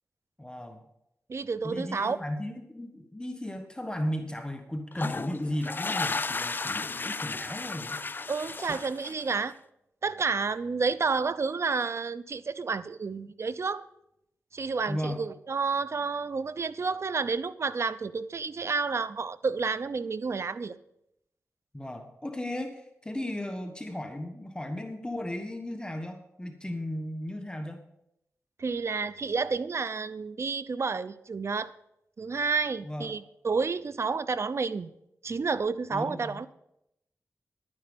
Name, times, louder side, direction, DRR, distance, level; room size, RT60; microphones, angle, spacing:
voice 1, 0.4-0.8 1.6-8.0 14.9-15.2 21.7-27.8 32.8-33.1 35.9-36.4, left 1 dB, 15° left, 5 dB, 1.4 m, -35 dB
voice 2, 1.3-2.2 8.3-9.5 10.0-13.9 14.5-20.8 28.6-31.7 32.2-34.9 35.2-36.5, right 4 dB, 55° right, 15 dB, 0.6 m, -30 dB
sound 1, 4.9-9.5, left 3 dB, 35° left, 0.4 m, -34 dB
11.5 x 9.8 x 5.4 m, 0.80 s
cardioid pair, 65°, 6 cm